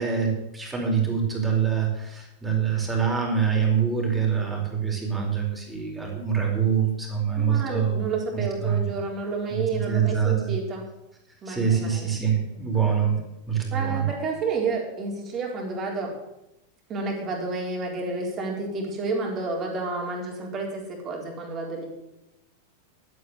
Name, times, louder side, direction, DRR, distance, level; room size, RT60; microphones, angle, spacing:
voice 1, 0.0-8.0 8.3-8.8 9.5-10.5 11.5-13.2 13.5-14.0, right 7 dB, 10° right, 0 dB, 4.5 m, -25 dB
voice 2, 7.4-10.8 11.4-12.1 13.7-16.1 16.9-21.9, right 3 dB, 30° right, 0 dB, 4.1 m, -30 dB
12.0 x 8.8 x 8.1 m, 0.90 s
figure-of-eight pair, 90°, 0 cm